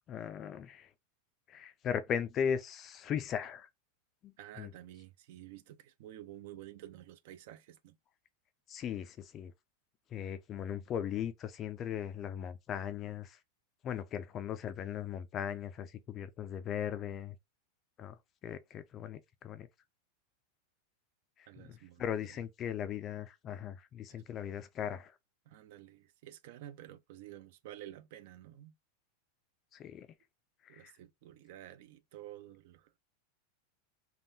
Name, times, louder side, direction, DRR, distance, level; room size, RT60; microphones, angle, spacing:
voice 1, 0.1-0.9 1.5-3.7 4.2-4.7 8.7-9.5 10.1-13.4 13.8-17.4 18.0-18.2 18.4-19.7 21.4-25.1 29.7-30.1 30.6-30.9, left 8 dB, 25° left, 0.4 m, -38 dB
voice 2, 4.4-8.0 21.5-22.0 22.3-22.4 24.1-24.2 25.5-28.7 30.7-33.0, right 13 dB, 50° right, 0.4 m, -51 dB
3.5 x 2.3 x 2.7 m
supercardioid pair, 170°, 0 cm